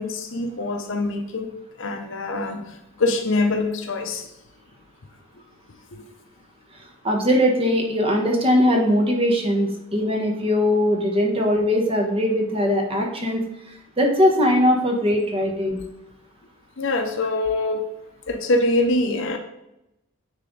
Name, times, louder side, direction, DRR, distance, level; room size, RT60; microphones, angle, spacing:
voice 1, 0.0-1.5 1.8-4.3 5.9-6.0 16.8-17.9 18.3-19.4, left 2 dB, 60° left, 6 dB, 0.7 m, -24 dB
voice 2, 7.0-13.4 14.0-15.8, equal, 25° right, 1 dB, 1.1 m, -20 dB
9.5 x 3.4 x 3.9 m, 0.87 s
head